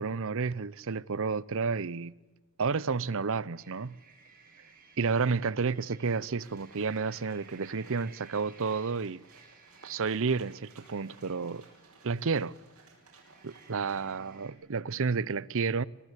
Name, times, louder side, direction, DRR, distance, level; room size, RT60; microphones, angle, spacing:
voice 1, 0.0-2.1 2.6-4.0 5.0-9.2 9.8-11.6 12.0-12.5 13.4-15.8, right 5 dB, 65° right, 0.7 m, -31 dB
sound 1, 3.6-14.5, right 4 dB, 40° right, 7.1 m, -58 dB
sound 2, 6.3-14.2, right 4 dB, 80° right, 7.9 m, -59 dB
25.5 x 18.5 x 8.2 m
head